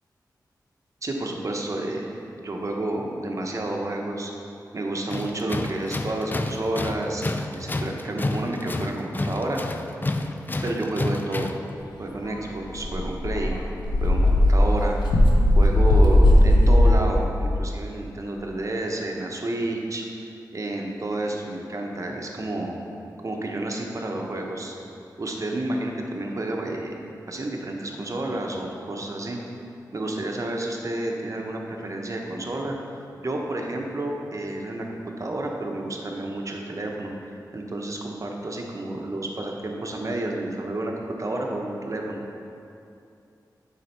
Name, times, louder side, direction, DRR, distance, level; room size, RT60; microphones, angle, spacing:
voice 1, 1.0-2.1 2.4-4.3 4.7-9.6 10.6-11.5 12.0-13.6 14.0-15.0 15.6-20.0 20.5-22.7 23.2-24.7 25.2-29.4 29.9-32.8 33.2-42.2, right 1 dB, 45° right, 0 dB, 1.0 m, -30 dB
Tools, 5.1-11.7, left 2 dB, 25° left, 0.4 m, -30 dB
Dog, 12.3-12.4 12.7-16.9, left 1 dB, 90° left, 0.8 m, -17 dB
7.7 x 4.9 x 4.4 m, 2.6 s
cardioid pair, 55°, 7 cm